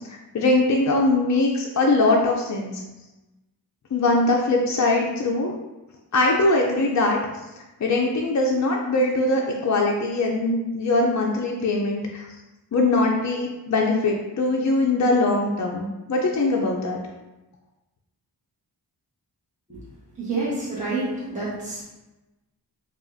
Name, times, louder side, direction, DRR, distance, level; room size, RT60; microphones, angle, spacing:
voice 1, 0.1-2.8 3.9-5.5 6.1-7.2 7.8-12.2 12.7-17.0, left 2 dB, 45° left, -1 dB, 0.4 m, -21 dB
voice 2, 20.2-21.8, right 2 dB, 20° right, -9 dB, 1.2 m, -28 dB
5.0 x 2.4 x 2.5 m, 1.0 s
wide cardioid pair, 110°, 41 cm